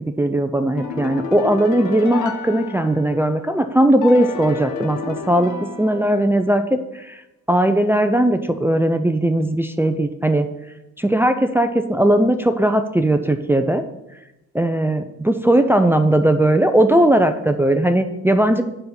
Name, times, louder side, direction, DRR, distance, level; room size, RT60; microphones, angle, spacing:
voice 1, 0.2-5.5 5.8-7.2 7.5-10.5 11.0-13.8 14.5-18.6, right 1 dB, 10° right, 7 dB, 0.5 m, -18 dB
sound 1, 0.8-3.4 4.0-6.5, left 6 dB, 90° left, 1.0 m, -31 dB
7.7 x 5.4 x 5.8 m, 0.92 s
cardioid pair, 90°, 30 cm